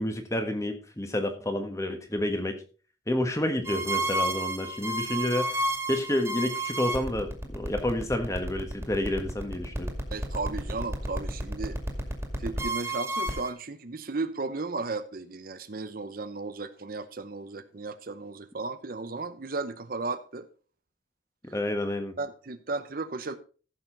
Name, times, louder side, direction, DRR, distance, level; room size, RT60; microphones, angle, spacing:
voice 1, 0.0-2.6 3.1-9.9 21.5-22.1, left 1 dB, 15° left, 1.4 m, -29 dB
sound 1, 3.7-13.5, right 1 dB, 15° right, 2.2 m, -31 dB
voice 2, 10.1-11.8 12.4-20.5 22.2-23.4, right 3 dB, 50° right, 0.7 m, -35 dB
14.5 x 6.8 x 3.9 m
head